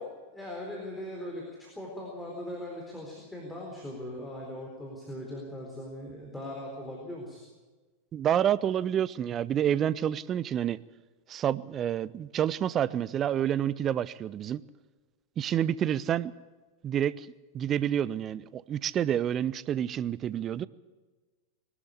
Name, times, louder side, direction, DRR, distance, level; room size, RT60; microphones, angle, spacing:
voice 1, 0.0-7.4, left 1 dB, 5° left, -2 dB, 4.1 m, -40 dB
voice 2, 8.1-10.8 11.3-14.6 15.4-16.3 16.8-17.3 17.5-20.7, right 10 dB, 30° right, 19 dB, 0.6 m, -28 dB
21.5 x 12.5 x 9.9 m, 1.3 s
figure-of-eight pair, 90°, 0 cm